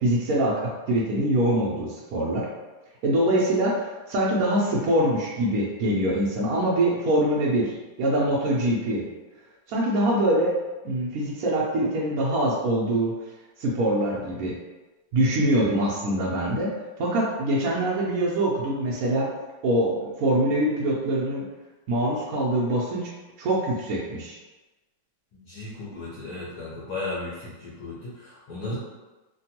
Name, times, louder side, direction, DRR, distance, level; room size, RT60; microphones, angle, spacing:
voice 1, 0.0-2.5 3.0-9.0 9.7-10.5 10.8-13.1 13.6-14.6 15.1-16.7 17.0-19.3 19.6-21.5 21.9-23.1 23.4-24.4, right 1 dB, 90° right, -4 dB, 0.7 m, -24 dB
voice 2, 25.4-28.8, left 2 dB, 70° left, -7 dB, 0.9 m, -35 dB
3.3 x 2.2 x 2.8 m, 1.2 s
omnidirectional pair, 2.2 m